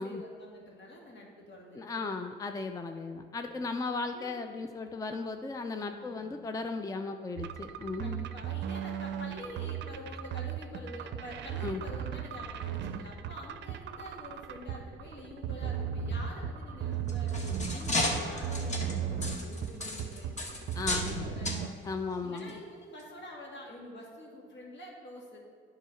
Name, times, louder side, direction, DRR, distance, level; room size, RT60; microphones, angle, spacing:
voice 1, 0.0-2.1 3.5-3.7 4.1-4.4 5.7-6.3 8.0-17.4 17.7-20.3 20.8-21.8 22.2-25.4, left 1 dB, 65° left, -1 dB, 1.9 m, -47 dB
voice 2, 1.7-8.3 11.6-11.8 20.7-21.3 21.8-22.5, left 3 dB, 15° left, 6 dB, 0.4 m, -36 dB
sound 1, 7.4-21.7, right 8 dB, 65° right, 0.5 m, -36 dB
sound 2, 16.9-21.2 21.4-21.6 22.4-22.5 23.0-23.1, left 2 dB, 35° left, 1.3 m, -34 dB
9.1 x 3.9 x 5.7 m, 2.2 s
cardioid pair, 90°, 20 cm